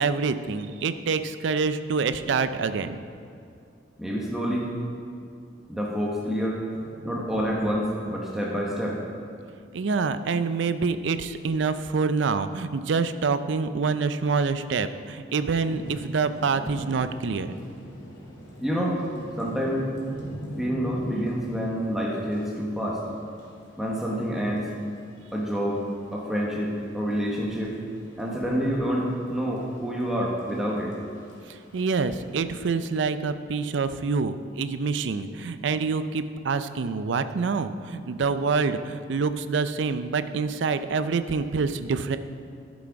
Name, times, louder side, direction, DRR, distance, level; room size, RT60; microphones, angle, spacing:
voice 1, 0.0-3.0 7.0-7.1 9.7-17.5 31.5-42.2, right 4 dB, 75° right, 11 dB, 0.4 m, -26 dB
voice 2, 4.0-4.7 5.7-6.6 7.0-9.0 18.6-19.0 19.4-19.9 20.6-23.0 23.8-24.7 25.3-25.8 26.1-27.7 28.2-30.9, equal, ahead, -4 dB, 1.1 m, -27 dB
Thunder / Rain, 15.3-32.3, equal, 90° left, 2.3 m, -43 dB
12.0 x 6.2 x 4.7 m, 2.4 s
head